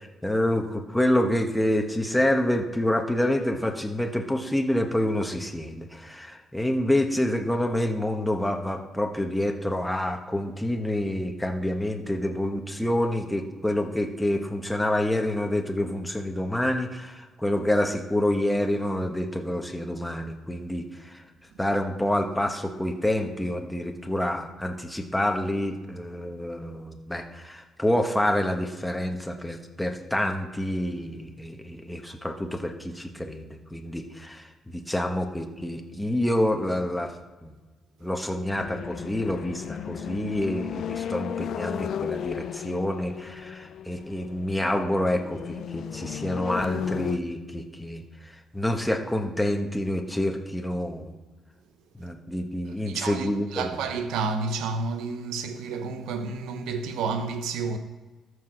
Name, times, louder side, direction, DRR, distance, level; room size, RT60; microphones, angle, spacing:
voice 1, 0.0-21.2 21.6-37.1 37.4-37.5 38.0-51.1 52.0-53.8, left 1 dB, 5° left, 1.2 m, -27 dB
sound 1, 38.5-47.2, left 9 dB, 65° left, 0.4 m, -34 dB
voice 2, 52.9-57.8, right 4 dB, 90° right, 0.9 m, -30 dB
13.5 x 4.8 x 6.0 m
cardioid pair, 85°, 0 cm